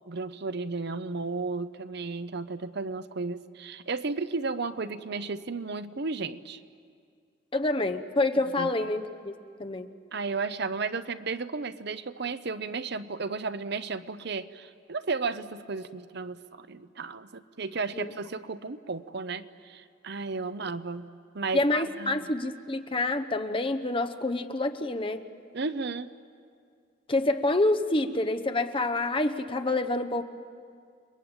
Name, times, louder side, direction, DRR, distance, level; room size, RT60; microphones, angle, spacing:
voice 1, 0.1-6.6 8.6-8.7 10.1-21.1 21.3-22.3 25.5-26.1, right 4 dB, 55° right, 12 dB, 0.8 m, -34 dB
voice 2, 7.5-9.3 9.6-9.9 17.9-18.1 21.5-25.2 27.1-30.2, left 2 dB, 25° left, 6 dB, 1.0 m, -27 dB
30.0 x 22.0 x 8.9 m, 2.2 s
head